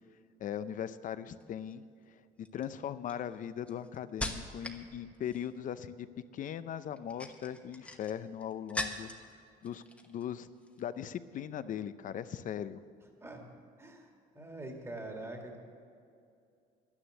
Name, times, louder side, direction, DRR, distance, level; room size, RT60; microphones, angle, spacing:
voice 1, 0.4-1.8 2.1-2.2 2.5-6.1 6.3-9.1 9.6-10.5 10.8-12.8, left 9 dB, 50° left, 13 dB, 0.6 m, -39 dB
sound 1, 1.4-1.7 2.5-4.9 5.1-5.7 6.9-9.3 9.6-10.3 10.6-10.8, left 1 dB, 5° left, 1.1 m, -41 dB
voice 2, 14.3-15.6, right 2 dB, 15° right, 2 dB, 1.8 m, -43 dB
11.0 x 9.9 x 7.5 m, 2.5 s
cardioid pair, 110°, 17 cm